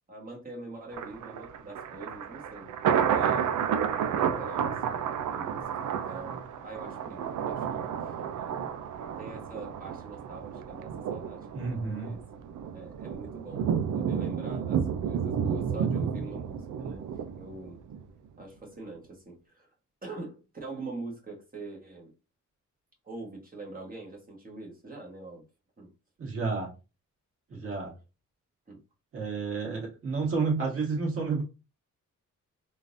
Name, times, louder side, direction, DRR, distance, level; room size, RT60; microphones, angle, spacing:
voice 1, 0.1-2.7 3.1-3.6 4.0-8.7 9.2-12.2 12.7-13.7 13.9-17.1 17.4-17.8 18.4-19.7 20.0-22.1 23.0-25.4 25.8-25.9 27.5-27.7 28.7-28.8, right 2 dB, 30° right, 1.2 m, -44 dB
Thunder, 0.9-18.0 18.4-18.5, right 8 dB, 75° right, 0.5 m, -31 dB
voice 2, 11.5-12.2 26.2-26.7 27.5-27.9 29.1-31.4, right 4 dB, 45° right, 1.9 m, -30 dB
3.7 x 2.5 x 2.5 m
cardioid pair, 130°, 31 cm